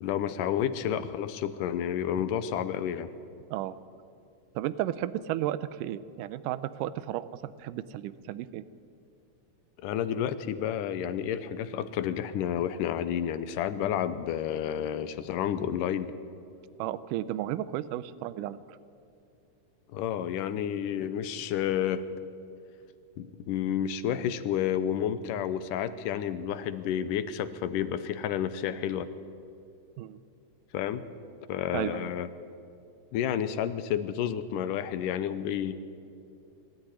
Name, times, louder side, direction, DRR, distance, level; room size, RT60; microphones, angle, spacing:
voice 1, 0.0-3.1 9.8-16.1 19.9-22.0 23.2-29.1 30.7-31.1 31.5-32.3 33.1-35.7, left 9 dB, 85° left, 13 dB, 2.4 m, -30 dB
voice 2, 4.6-8.6 16.8-18.8 30.0-30.2 31.7-32.1, right 13 dB, 80° right, 15 dB, 2.2 m, -33 dB
23.0 x 13.5 x 10.0 m, 2.6 s
omnidirectional pair, 3.8 m